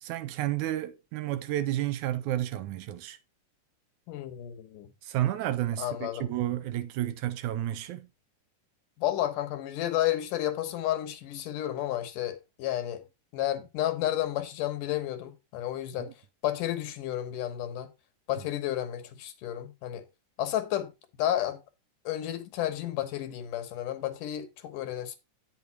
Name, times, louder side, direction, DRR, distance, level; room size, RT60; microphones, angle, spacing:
voice 1, 0.0-3.2 5.0-8.1 16.0-16.1, right 13 dB, 75° right, 2.0 m, -31 dB
voice 2, 4.1-4.9 5.8-6.3 9.0-13.0 13.3-16.1 16.4-17.9 18.3-20.0 20.4-20.9 21.2-21.6 22.1-25.2, left 12 dB, 85° left, 2.7 m, -31 dB
9.2 x 5.3 x 4.6 m
omnidirectional pair, 3.7 m